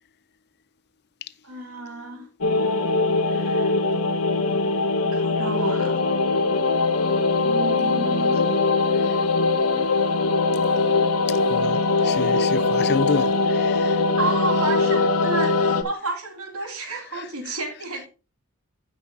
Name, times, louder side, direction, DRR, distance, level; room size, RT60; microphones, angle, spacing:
voice 1, 1.4-2.3 3.3-3.8 5.0-6.0 7.4-8.5 13.9-18.1, right 3 dB, 75° right, 2.8 m, -31 dB
sound 1, 2.4-15.8, left 3 dB, 80° left, 0.9 m, -21 dB
voice 2, 10.8-14.2 17.1-17.5, left 4 dB, 50° left, 0.6 m, -30 dB
15.5 x 6.0 x 2.8 m
head